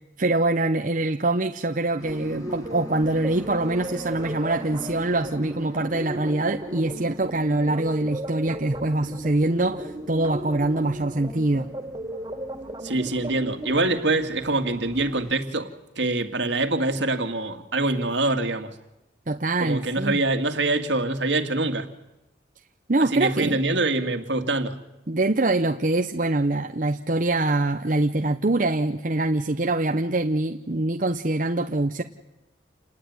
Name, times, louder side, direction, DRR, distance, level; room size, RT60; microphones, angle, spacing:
voice 1, 0.2-11.7 19.3-20.2 22.9-23.6 25.1-32.0, right 2 dB, 45° right, 5 dB, 0.9 m, -24 dB
sound 1, 2.0-15.3, equal, 20° left, 3.0 m, -46 dB
sound 2, 2.0-14.0, right 1 dB, 20° right, 2.5 m, -36 dB
voice 2, 12.8-18.7 19.6-21.9 23.1-24.8, right 2 dB, 70° right, 6 dB, 2.3 m, -25 dB
28.5 x 19.0 x 9.7 m, 0.94 s
head